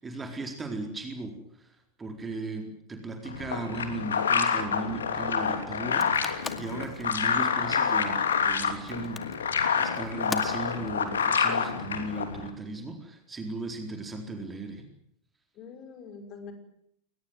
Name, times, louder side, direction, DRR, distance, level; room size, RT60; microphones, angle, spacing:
voice 1, 0.0-14.9, right 2 dB, 15° right, 4 dB, 4.3 m, -37 dB
sound 1, 3.2-12.5, left 6 dB, 65° left, 3.0 m, -28 dB
sound 2, 5.8-12.2, left 4 dB, 15° left, 2.2 m, -42 dB
voice 2, 6.5-6.9 15.6-16.5, left 5 dB, 35° left, 8 dB, 5.4 m, -45 dB
22.5 x 20.5 x 9.5 m, 0.74 s
figure-of-eight pair, 90°, 0 cm